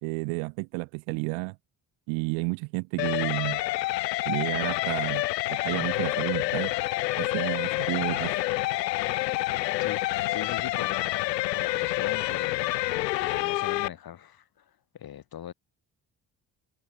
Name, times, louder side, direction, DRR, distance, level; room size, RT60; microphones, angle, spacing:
voice 1, 0.0-1.6 2.1-3.6 4.2-6.7 7.1-8.3, right 38 dB, 65° right, 0.8 m, -31 dB
sound 1, 3.0-13.9, left 18 dB, 75° left, 1.1 m, -28 dB
voice 2, 9.8-15.5, left 10 dB, 45° left, 1.9 m, -41 dB
figure-of-eight pair, 40°, 50 cm